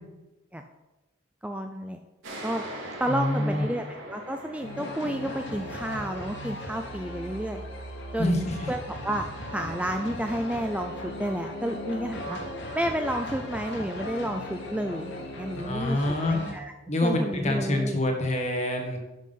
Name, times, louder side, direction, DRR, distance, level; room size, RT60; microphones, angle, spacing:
voice 1, 1.4-2.0 2.4-2.6 3.0-7.6 8.1-12.4 12.7-16.0 16.3-16.7 17.0-18.0, equal, 5° right, 5 dB, 0.5 m, -31 dB
sound 1, 2.2-9.4, right 1 dB, 80° right, 3.6 m, -44 dB
voice 2, 3.1-3.7 8.2-8.7 15.6-16.6 16.9-19.0, left 1 dB, 35° left, 2 dB, 1.8 m, -26 dB
sound 2, 4.6-16.5, left 1 dB, 60° left, 2.4 m, -37 dB
11.0 x 6.4 x 5.6 m, 1.1 s
head